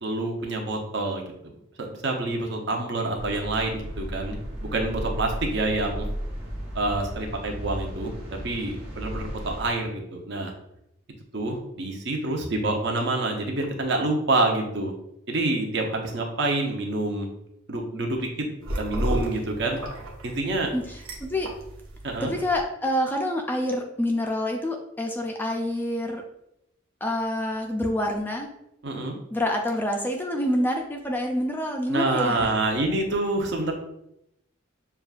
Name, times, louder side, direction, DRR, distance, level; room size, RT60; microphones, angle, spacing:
voice 1, 0.0-1.3 1.8-6.1 6.7-8.1 8.4-10.5 11.3-14.9 15.3-17.3 17.7-18.5 18.8-19.8 20.2-20.7 22.0-22.3 28.8-29.1 31.9-33.7, right 2 dB, 60° right, 2 dB, 0.7 m, -27 dB
sound 1, 3.2-9.7, equal, 30° right, 1.5 m, -34 dB
sound 2, 18.6-22.6, right 1 dB, 90° right, 0.8 m, -33 dB
voice 2, 20.7-21.5 22.2-26.2 27.0-28.5 29.3-32.5, left 1 dB, 10° left, 2 dB, 0.3 m, -27 dB
6.7 x 2.3 x 2.4 m, 0.81 s
head